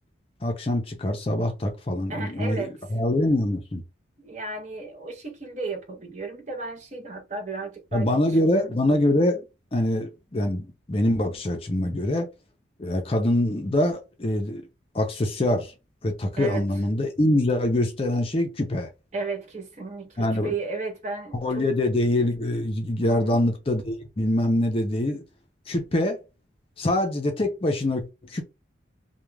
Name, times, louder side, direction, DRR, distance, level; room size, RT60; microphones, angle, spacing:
voice 1, 0.4-3.8 7.9-9.4 9.7-12.3 12.8-14.6 14.9-15.7 16.0-18.9 20.2-20.5 21.4-25.2 25.7-26.2 26.8-28.4, left 1 dB, 30° left, 0.5 m, -24 dB
voice 2, 2.1-2.7 4.2-8.7 16.4-16.6 19.1-21.7 23.0-23.4, right 4 dB, 35° right, 0.7 m, -34 dB
2.3 x 2.2 x 3.1 m
head